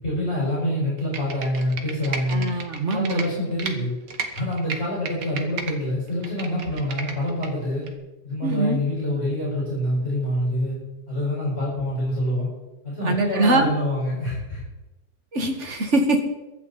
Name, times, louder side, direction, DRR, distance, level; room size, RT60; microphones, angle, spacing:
voice 1, 0.0-2.5 2.9-3.9 4.3-7.9 8.2-10.8 11.1-12.5 12.8-14.7, left 1 dB, 35° left, -6 dB, 6.1 m, -26 dB
Computer keyboard, 1.0-3.7 4.1-5.7 6.1-7.5 7.9-8.0, right 5 dB, 80° right, 2.0 m, -33 dB
voice 2, 2.3-3.2 8.4-8.8 13.0-13.7 15.3-16.2, right 2 dB, 45° right, 4 dB, 2.1 m, -22 dB
23.0 x 9.6 x 4.3 m, 1.0 s
omnidirectional pair, 1.8 m